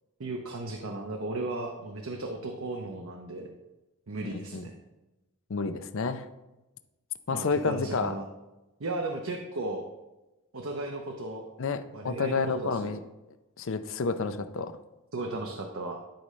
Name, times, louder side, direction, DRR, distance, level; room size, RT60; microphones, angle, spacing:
voice 1, 0.2-3.5 4.1-4.7 7.3-8.3 8.8-9.9 10.5-11.4 11.9-13.0 15.1-16.0, right 2 dB, 65° right, 2 dB, 0.8 m, -35 dB
voice 2, 4.3-4.7 5.5-6.2 7.3-8.1 11.6-13.0 13.6-14.7, left 4 dB, 60° left, 11 dB, 0.6 m, -30 dB
11.5 x 5.4 x 3.2 m, 1.0 s
head